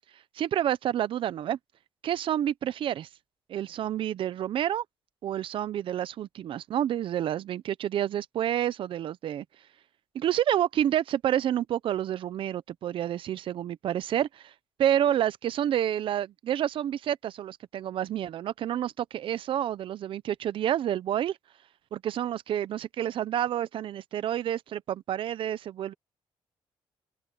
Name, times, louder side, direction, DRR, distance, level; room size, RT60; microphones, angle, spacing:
voice 1, 0.3-1.6 2.0-3.1 3.5-4.8 5.2-9.4 10.1-14.5 14.8-21.4 21.9-25.9, right 11 dB, 65° right, 0.7 m, -29 dB
open air
cardioid pair, 125°, 10 cm